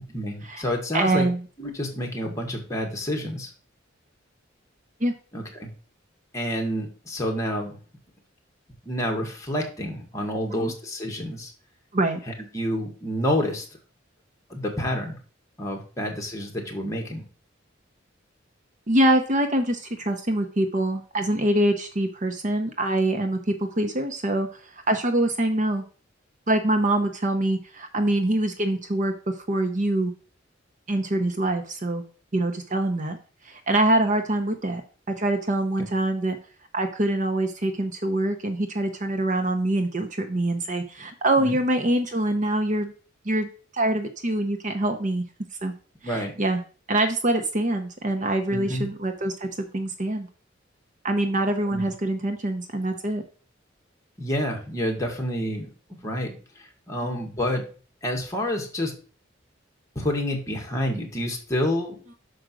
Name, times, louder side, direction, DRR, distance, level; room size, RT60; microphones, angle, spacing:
voice 1, 0.1-1.3 1.6-3.5 5.3-5.7 6.3-7.8 8.9-11.5 12.5-13.6 14.5-15.2 15.6-17.2 41.4-41.6 46.0-46.3 48.5-48.9 51.7-51.8 54.2-57.7 58.0-58.9 60.0-62.0, equal, 15° left, 0 dB, 1.9 m, -28 dB
voice 2, 0.9-1.4 5.0-5.1 10.5-10.7 11.9-12.2 16.0-16.1 18.9-25.8 26.5-30.1 30.9-32.0 32.3-33.2 33.4-34.8 35.1-36.4 36.7-42.9 43.2-45.2 45.6-45.7 46.0-46.6 46.9-50.3 51.0-53.2 57.0-57.1, right 1 dB, 40° right, 7 dB, 0.8 m, -24 dB
6.2 x 5.0 x 6.1 m, 0.39 s
head